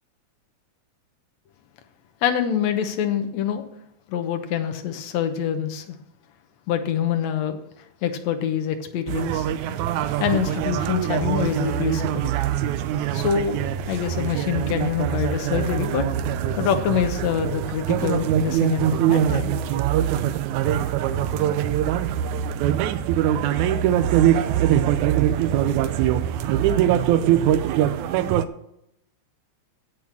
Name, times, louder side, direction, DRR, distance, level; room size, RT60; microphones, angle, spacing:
voice 1, 2.2-3.6 4.1-6.0 6.7-7.6 8.0-9.5 10.2-12.3 13.1-16.0 16.6-19.5, left 8 dB, 70° left, 6 dB, 2.2 m, -25 dB
sound 1, 9.1-28.4, right 10 dB, 85° right, 2.0 m, -23 dB
8.3 x 7.6 x 7.4 m, 0.80 s
omnidirectional pair, 3.4 m